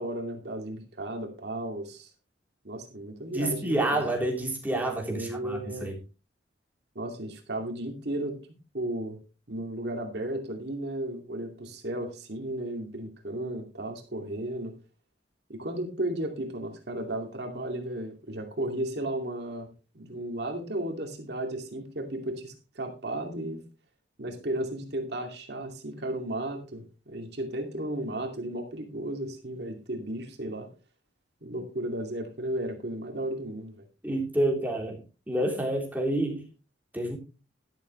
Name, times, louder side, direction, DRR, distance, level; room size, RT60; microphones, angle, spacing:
voice 1, 0.0-2.1 2.6-4.1 5.1-5.9 6.9-8.4 8.7-9.2 9.5-14.7 15.5-19.7 19.9-23.6 24.2-30.7 31.4-33.8, right 1 dB, 60° right, 2.5 m, -34 dB
voice 2, 3.3-5.9 34.0-35.0 35.3-36.4 36.9-37.2, right 1 dB, 10° right, 3.6 m, -28 dB
12.5 x 12.0 x 3.2 m
head